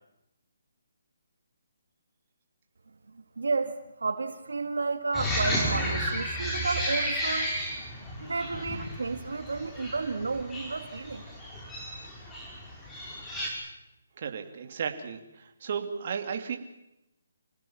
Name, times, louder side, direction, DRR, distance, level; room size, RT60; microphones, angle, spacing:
voice 1, 3.4-7.5 8.2-11.2, right 4 dB, 85° right, 8 dB, 2.5 m, -32 dB
sound 1, 5.1-13.5, equal, 10° left, 5.5 m, -33 dB
voice 2, 14.2-16.6, right 6 dB, 45° right, 5 dB, 2.9 m, -34 dB
27.0 x 19.0 x 7.4 m, 0.88 s
hypercardioid pair, 160°, 0 cm